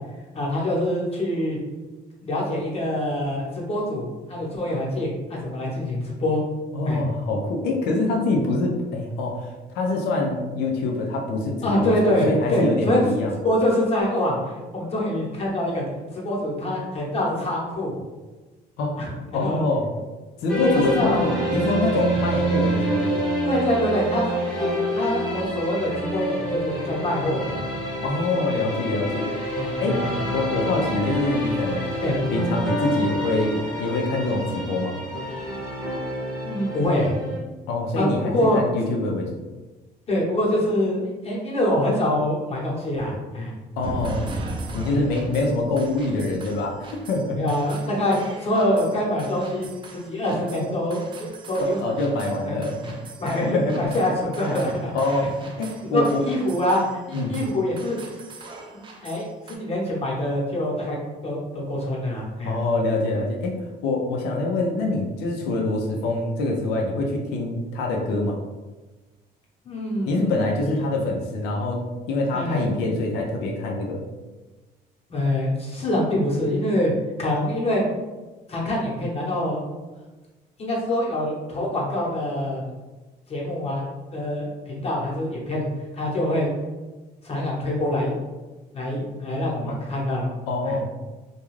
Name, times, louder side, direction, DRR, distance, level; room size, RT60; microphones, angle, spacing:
voice 1, 0.3-1.6 2.2-6.4 6.9-7.0 11.6-13.0 13.4-14.4 14.7-15.8 16.1-18.0 19.0-19.1 19.4-19.6 20.5-21.3 23.4-27.6 27.8-28.0 29.5-30.1 32.0-32.2 36.4-37.1 37.9-38.6 40.1-43.5 44.9-45.0 47.3-51.8 52.4-52.6 52.8-52.9 53.2-54.9 55.9-56.8 57.1-58.0 58.7-61.0 61.2-62.5 69.6-70.3 70.7-70.8 72.3-72.6 75.1-76.9 77.2-77.8 78.5-79.6 80.6-82.6 83.3-83.8 84.1-85.7 85.9-86.5 87.2-88.1 88.7-90.3 90.7-90.8, left 1 dB, 35° left, -4 dB, 0.9 m, -25 dB
voice 2, 6.7-9.5 9.7-13.3 18.8-19.9 20.4-23.2 28.0-29.3 29.8-31.9 32.3-35.0 37.7-39.4 43.8-44.3 44.7-46.8 47.1-47.4 51.6-52.8 53.4-53.9 54.9-56.2 57.1-57.3 62.4-68.4 70.1-74.0 89.7-89.8 90.5-90.8, left 2 dB, 85° left, 0 dB, 0.5 m, -25 dB
sound 1, 20.5-37.4, equal, 5° left, 0.8 m, -27 dB
sound 2, 43.8-59.6, right 2 dB, 30° right, 0.4 m, -39 dB
2.3 x 2.3 x 3.1 m, 1.2 s
cardioid pair, 110°, 17 cm